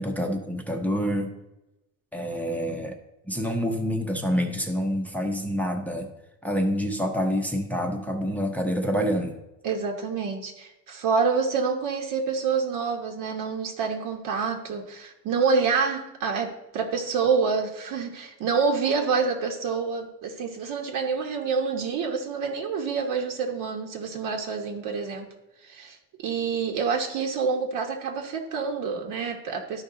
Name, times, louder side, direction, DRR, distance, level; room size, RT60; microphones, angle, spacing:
voice 1, 0.0-1.3 2.1-3.0 3.3-6.1 6.4-9.4, equal, 5° left, 2 dB, 0.7 m, -27 dB
voice 2, 9.6-25.3 25.6-29.8, right 5 dB, 65° right, 2 dB, 1.2 m, -27 dB
12.5 x 5.2 x 3.8 m, 0.98 s
cardioid pair, 155°, 35 cm